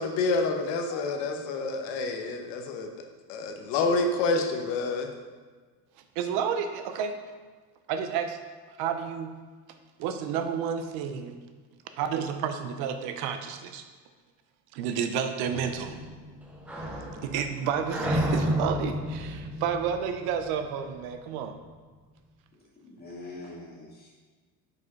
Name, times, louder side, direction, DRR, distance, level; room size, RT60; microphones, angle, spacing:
voice 1, 0.0-2.9 3.3-5.1, left 3 dB, 90° left, 4 dB, 0.9 m, -28 dB
voice 2, 6.2-7.1 7.9-8.4 8.7-9.3 10.0-11.3 12.0-13.9 14.7-16.0 17.2-21.6, right 7 dB, 70° right, 8 dB, 0.7 m, -30 dB
sound 1, 15.5-20.9, equal, 5° right, 0.4 m, -32 dB
voice 3, 22.8-24.1, left 2 dB, 25° left, -5 dB, 1.7 m, -43 dB
4.9 x 4.8 x 4.8 m, 1.4 s
cardioid pair, 175°, 39 cm